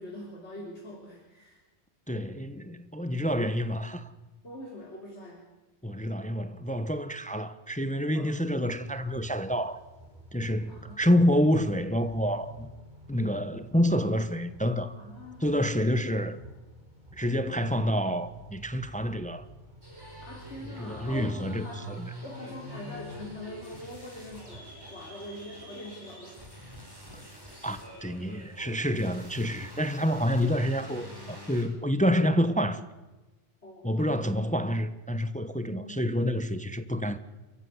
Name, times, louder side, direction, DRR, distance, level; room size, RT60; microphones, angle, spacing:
voice 1, 0.0-1.6 4.4-5.5 8.1-8.3 10.7-11.6 15.0-15.6 20.2-21.9 22.2-26.4 33.6-34.5 35.6-36.0 36.5-36.7, left 1 dB, 70° left, 4.0 m, -44 dB
voice 2, 2.1-4.1 5.8-9.8 10.3-12.7 13.1-15.0 15.4-16.4 17.1-19.4 20.8-22.1 27.6-32.8 33.8-37.2, equal, 5° left, 1.1 m, -28 dB
sound 1, 8.6-24.6, right 1 dB, 40° right, 6.0 m, -49 dB
sound 2, 19.8-31.6, equal, 20° right, 6.7 m, -48 dB
28.0 x 15.0 x 9.6 m
omnidirectional pair, 1.2 m